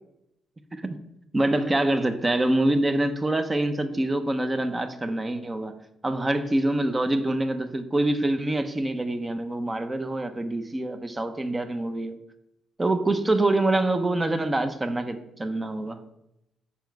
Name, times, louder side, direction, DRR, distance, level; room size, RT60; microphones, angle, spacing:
voice 1, 1.3-12.2 12.8-16.0, right 1 dB, 20° right, 9 dB, 0.6 m, -25 dB
5.7 x 4.4 x 4.6 m, 0.85 s
cardioid pair, 90°, 0 cm